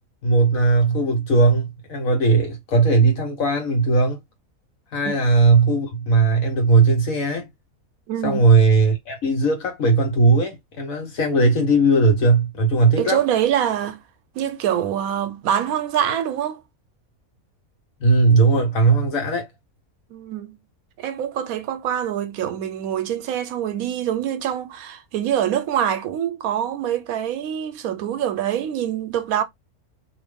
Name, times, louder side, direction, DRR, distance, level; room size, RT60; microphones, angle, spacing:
voice 1, 0.2-4.2 4.9-7.5 8.2-13.2 18.0-19.5, right 3 dB, 70° left, 1.5 m, -18 dB
voice 2, 8.1-8.5 13.0-14.0 14.3-16.6 20.1-20.6 21.0-29.4, right 10 dB, 75° right, 1.0 m, -25 dB
2.7 x 2.6 x 3.4 m
omnidirectional pair, 1.5 m